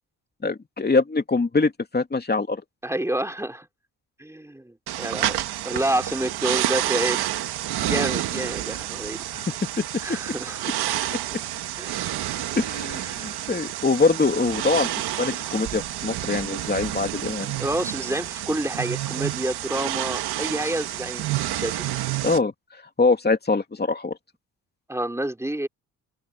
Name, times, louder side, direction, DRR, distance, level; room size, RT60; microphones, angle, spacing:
voice 1, 0.4-2.6 9.3-9.8 11.1-11.4 12.6-17.5 22.2-22.5 23.0-24.2, left 3 dB, 25° left, 2.9 m, -24 dB
voice 2, 2.8-3.7 4.2-5.4 5.6-7.2 7.9-9.2 10.0-10.6 11.8-12.1 17.6-21.9 24.9-25.7, right 1 dB, 5° right, 3.9 m, -28 dB
sound 1, 4.9-22.4, right 13 dB, 85° right, 1.8 m, -29 dB
cardioid pair, 75°, 38 cm